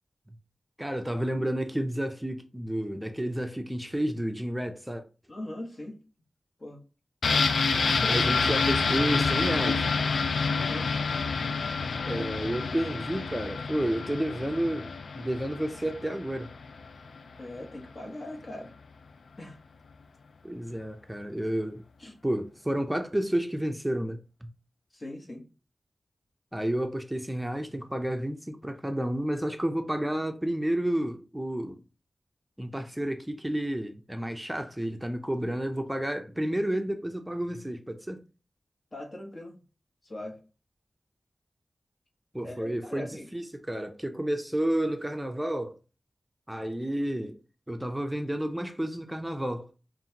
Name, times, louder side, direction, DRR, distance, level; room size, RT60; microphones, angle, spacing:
voice 1, 0.8-5.0 8.1-9.9 12.1-16.5 20.4-21.8 22.2-24.5 26.5-31.8 32.6-38.2 42.3-45.8 46.5-47.4 47.7-49.7, right 1 dB, 10° right, 0.5 m, -31 dB
voice 2, 5.3-6.0 6.6-6.8 7.3-8.2 10.5-10.9 12.1-12.2 12.5-12.9 17.4-18.7 19.4-19.6 22.0-22.2 24.9-25.4 38.9-39.6 40.0-40.4 42.4-43.3, left 1 dB, 50° left, 1.4 m, -41 dB
sound 1, 7.2-16.9 17.2-17.3, left 4 dB, 90° left, 0.3 m, -28 dB
5.4 x 2.5 x 2.8 m
wide cardioid pair, 65°, 0 cm